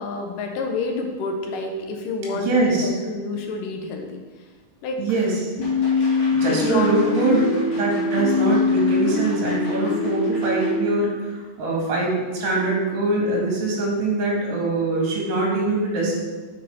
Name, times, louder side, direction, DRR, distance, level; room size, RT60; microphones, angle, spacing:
voice 1, 0.0-4.2 4.8-5.0 6.5-7.6, left 3 dB, 75° left, 3 dB, 2.1 m, -28 dB
voice 2, 2.3-2.9 5.0-5.5 6.3-16.1, right 2 dB, 60° right, -3 dB, 3.6 m, -23 dB
sound 1, 5.6-10.8, left 3 dB, 35° left, 2.7 m, -23 dB
6.5 x 6.5 x 5.5 m, 1.4 s
omnidirectional pair, 4.5 m